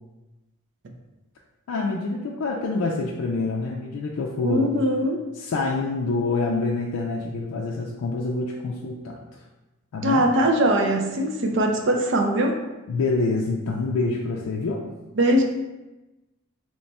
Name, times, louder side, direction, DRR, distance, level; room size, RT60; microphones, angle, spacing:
voice 1, 1.7-4.7 5.3-9.4 9.9-10.3 12.9-14.8, left 3 dB, 80° left, -2 dB, 0.4 m, -26 dB
voice 2, 4.4-5.2 10.0-12.5 15.2-15.4, right 1 dB, 55° right, 2 dB, 0.4 m, -21 dB
3.1 x 2.2 x 4.0 m, 1.0 s
head